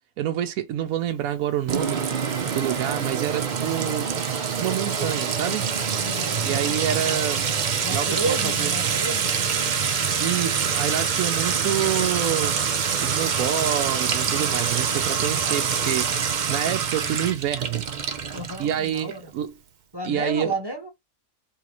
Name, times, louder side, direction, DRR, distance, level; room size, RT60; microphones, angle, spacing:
voice 1, 0.2-2.1 2.5-4.1 4.6-5.7 6.4-7.5 7.9-8.7 10.2-12.6 13.0-17.9 18.6-19.5 20.0-20.5, right 10 dB, 75° right, 1.0 m, -27 dB
Sink (filling or washing) / Trickle dribble / Fill (with liquid), 1.7-19.1, right 6 dB, 55° right, 0.5 m, -25 dB
voice 2, 6.0-6.6 7.8-9.8 18.3-19.3 19.9-20.9, right 2 dB, 15° right, 1.2 m, -32 dB
3.9 x 2.5 x 2.9 m
omnidirectional pair, 1.5 m